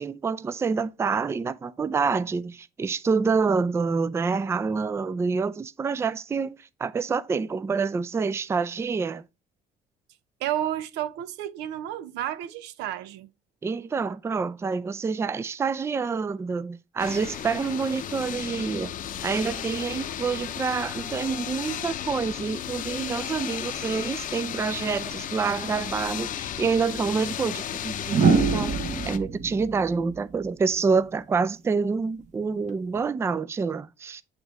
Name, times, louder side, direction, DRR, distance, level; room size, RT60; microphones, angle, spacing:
voice 1, 0.0-9.2 13.6-18.9 19.2-28.8 29.1-34.2, right 5 dB, 15° right, 0.3 m, -27 dB
voice 2, 10.4-13.3, right 12 dB, 90° right, 0.6 m, -31 dB
sound 1, 17.0-29.2, left 10 dB, 50° left, 0.7 m, -34 dB
sound 2, 26.5-26.7 28.1-31.1 32.7-33.0, right 5 dB, 45° right, 0.9 m, -25 dB
8.7 x 3.0 x 3.5 m
cardioid pair, 110°, 17 cm